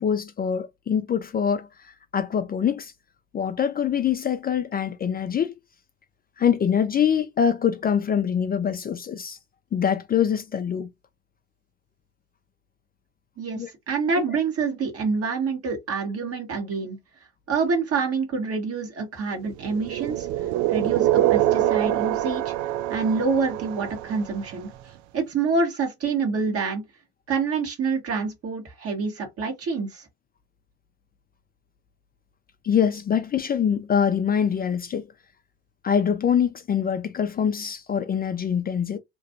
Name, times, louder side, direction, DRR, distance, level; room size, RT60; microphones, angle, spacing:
voice 1, 0.0-1.7 2.1-2.9 3.3-5.5 6.4-9.4 9.7-10.9 13.6-13.7 32.6-35.1 35.8-39.0, left 8 dB, 30° left, 0.5 m, -24 dB
voice 2, 13.4-17.0 17.5-20.3 20.7-22.5 22.9-24.7 25.1-26.8 27.3-30.0, right 4 dB, 45° right, 1.6 m, -27 dB
sound 1, 19.6-24.6, right 13 dB, 65° right, 0.5 m, -24 dB
3.0 x 2.6 x 2.7 m
hypercardioid pair, 70°, 32 cm